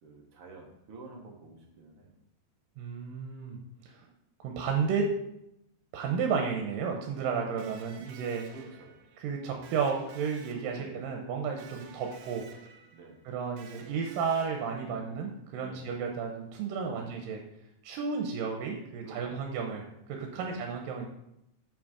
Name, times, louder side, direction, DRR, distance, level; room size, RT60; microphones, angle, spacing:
voice 1, 0.0-2.1 8.5-8.9 10.7-11.0 11.7-11.9 12.9-13.2 14.8-15.1 15.6-16.0 16.8-17.1 19.0-19.4 20.3-20.6, right 4 dB, 55° right, 0 dB, 1.8 m, -49 dB
voice 2, 2.8-3.6 3.9-4.1 4.4-5.1 5.9-8.4 9.2-12.5 13.3-17.4 17.8-21.1, right 6 dB, 90° right, 2 dB, 2.5 m, -32 dB
Electric guitar, 7.6-15.3, right 7 dB, 70° right, 1.7 m, -53 dB
7.0 x 6.2 x 5.1 m, 0.80 s
omnidirectional pair, 3.9 m